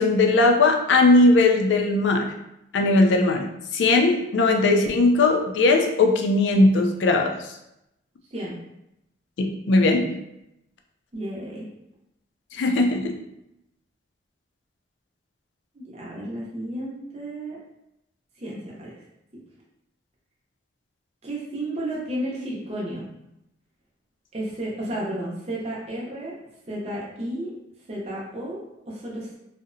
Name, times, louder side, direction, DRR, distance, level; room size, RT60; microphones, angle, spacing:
voice 1, 0.0-2.3 2.7-7.3 9.4-10.1 12.5-13.1, left 2 dB, 70° left, 4 dB, 0.4 m, -19 dB
voice 2, 11.1-11.7 15.7-17.6 18.4-18.9 21.2-23.1 24.3-26.3 26.7-27.5 27.9-28.6 28.9-29.4, right 1 dB, 35° right, -5 dB, 0.5 m, -32 dB
2.7 x 2.0 x 2.5 m, 0.85 s
head